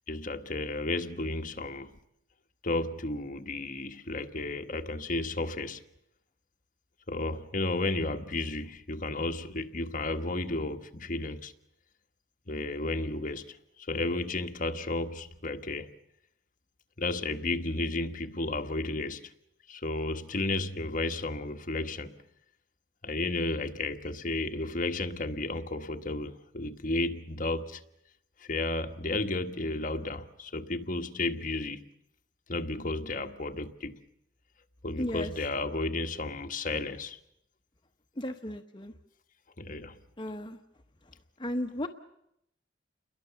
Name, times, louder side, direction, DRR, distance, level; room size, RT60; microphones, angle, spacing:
voice 1, 0.1-1.9 2.6-5.8 7.1-11.5 12.5-13.6 13.9-15.9 17.0-19.3 19.7-22.2 23.0-27.8 28.4-31.8 32.5-34.0 34.8-37.2 39.6-40.0, left 2 dB, 45° left, 1.5 m, -33 dB
voice 2, 35.0-35.3 38.1-38.9 40.2-40.6 41.0-41.9, left 1 dB, 25° left, 1.1 m, -35 dB
29.5 x 22.0 x 7.1 m
head